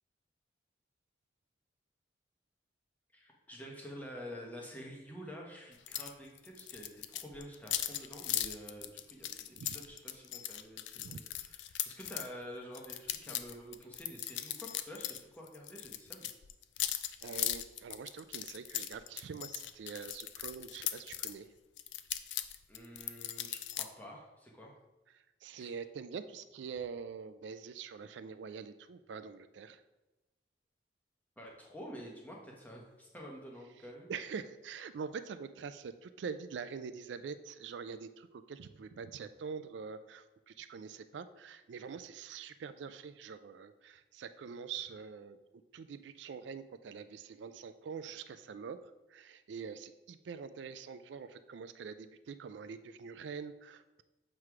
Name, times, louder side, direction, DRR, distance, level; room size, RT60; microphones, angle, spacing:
voice 1, 3.1-16.3 22.7-24.7 25.6-25.8 31.4-34.1, equal, 10° left, -2 dB, 1.0 m, -49 dB
sound 1, 5.9-6.1 6.4-12.3 12.7-15.2 15.5-21.3 21.8-23.9, left 12 dB, 80° left, 0.4 m, -38 dB
voice 2, 17.2-21.5 25.1-29.8 34.1-45.4 45.7-54.0, right 6 dB, 80° right, 11 dB, 0.4 m, -45 dB
7.5 x 3.2 x 4.7 m, 1.1 s
head